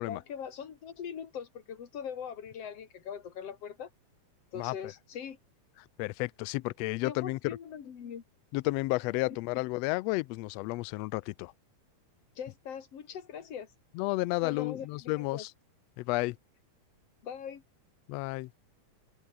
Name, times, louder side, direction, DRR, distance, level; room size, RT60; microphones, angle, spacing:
voice 1, 0.1-3.9 4.5-5.4 7.0-8.2 12.4-13.7 14.4-15.4 17.2-17.6, left 8 dB, 55° left, 3.2 m, -41 dB
voice 2, 4.6-4.9 6.0-7.6 8.5-11.5 13.9-15.5 16.0-16.4 18.1-18.5, left 22 dB, 80° left, 1.6 m, -32 dB
open air
omnidirectional pair, 3.3 m